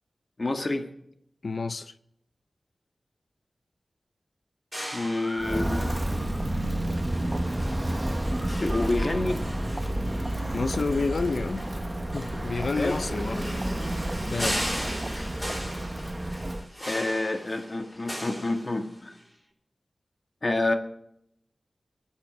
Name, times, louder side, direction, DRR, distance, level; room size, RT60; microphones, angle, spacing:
voice 1, 0.4-0.9 4.9-5.9 8.6-9.4 12.8-13.0 16.3-16.5 16.8-19.1 20.4-20.7, left 2 dB, 45° left, 1.7 m, -28 dB
voice 2, 1.4-1.9 10.5-11.6 12.1-13.7 14.3-14.6, left 4 dB, 70° left, 0.6 m, -29 dB
sound 1, 4.7-19.2, equal, 10° left, 4.9 m, -38 dB
Walk footsteps, 5.4-16.7, right 1 dB, 25° right, 1.0 m, -30 dB
21.0 x 7.4 x 6.2 m
wide cardioid pair, 60°, 0 cm